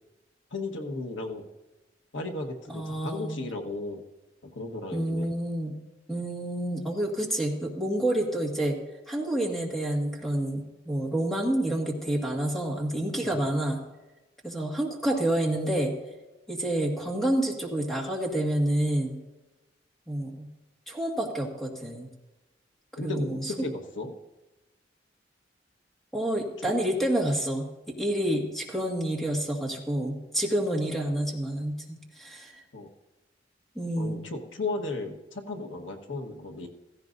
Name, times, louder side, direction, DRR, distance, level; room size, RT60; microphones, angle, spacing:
voice 1, 0.5-1.5 2.1-4.0 4.4-5.4 6.1-6.2 13.2-13.4 23.0-24.1 26.6-26.7 32.7-32.9 34.0-36.7, left 2 dB, 85° left, 3 dB, 1.4 m, -35 dB
voice 2, 2.7-3.4 4.9-5.7 6.1-8.8 9.1-13.8 14.4-15.9 16.5-19.2 20.1-20.5 20.9-22.1 23.0-23.5 26.1-27.7 28.0-32.5 33.7-34.2, right 1 dB, ahead, 0 dB, 1.8 m, -28 dB
16.0 x 15.5 x 2.6 m, 1.1 s
head